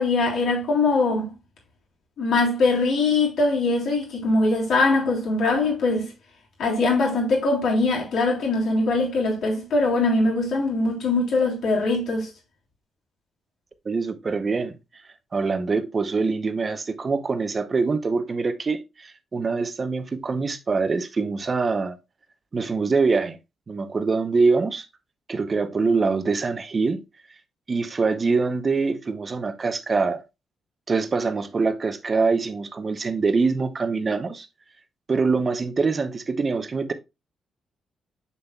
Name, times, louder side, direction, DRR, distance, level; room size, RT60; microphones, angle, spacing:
voice 1, 0.0-1.3 2.2-6.1 6.6-12.3, left 3 dB, 70° left, 3.4 m, -22 dB
voice 2, 13.8-14.7 15.3-22.0 22.5-23.4 23.7-24.9 25.3-27.0 27.7-30.2 30.9-34.5 35.1-36.9, right 4 dB, 30° right, 0.8 m, -24 dB
7.2 x 6.9 x 2.3 m
cardioid pair, 150°, 0 cm